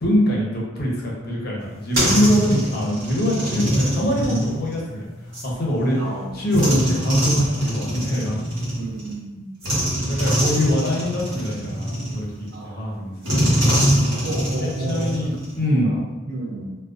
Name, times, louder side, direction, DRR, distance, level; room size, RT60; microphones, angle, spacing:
voice 1, 0.0-6.0 6.3-8.4 10.0-13.6 14.6-15.3 15.6-15.9, equal, 45° left, -3 dB, 0.6 m, -23 dB
sound 1, 1.6-5.5 6.5-9.1 9.6-12.5 13.2-15.7, equal, 65° right, 1.0 m, -24 dB
voice 2, 2.3-2.6 5.9-6.4 8.8-9.5 12.5-12.9 14.2-15.4 15.7-16.8, right 2 dB, 45° right, -2 dB, 0.4 m, -32 dB
2.4 x 2.1 x 2.4 m, 1.2 s
head